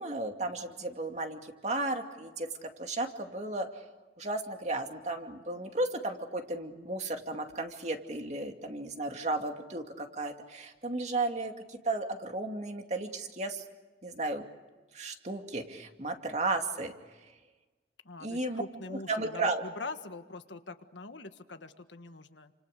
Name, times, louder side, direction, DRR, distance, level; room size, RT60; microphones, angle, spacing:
voice 1, 0.0-3.7 4.2-13.6 14.0-14.4 14.9-16.9 18.2-18.6 18.9-19.6, right 2 dB, 40° right, 4 dB, 2.5 m, -34 dB
voice 2, 18.0-22.5, left 3 dB, 80° left, 8 dB, 1.6 m, -43 dB
29.5 x 26.5 x 6.7 m, 1.2 s
head